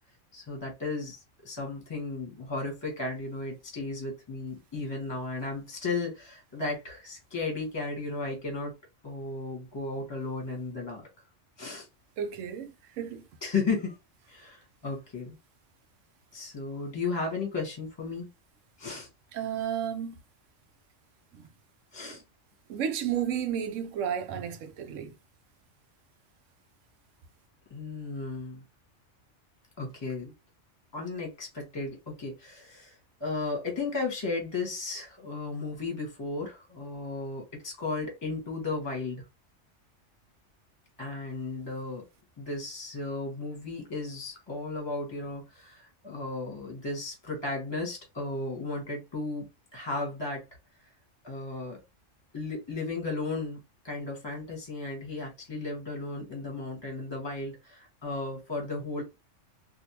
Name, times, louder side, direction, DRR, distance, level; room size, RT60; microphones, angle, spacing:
voice 1, 0.3-8.7 9.0-11.1 11.6-11.9 13.4-14.0 14.3-15.4 16.3-18.3 18.8-19.1 21.9-22.2 27.7-28.6 29.8-30.3 30.9-39.2 41.0-42.0 42.4-49.5 49.7-50.4 51.2-51.8 52.3-59.0, left 3 dB, 20° left, 1.2 m, -35 dB
voice 2, 12.2-13.2 19.3-20.1 21.3-21.5 22.0-22.2 22.7-25.2, right 9 dB, 85° right, 1.0 m, -32 dB
3.4 x 2.6 x 2.9 m
omnidirectional pair, 1.3 m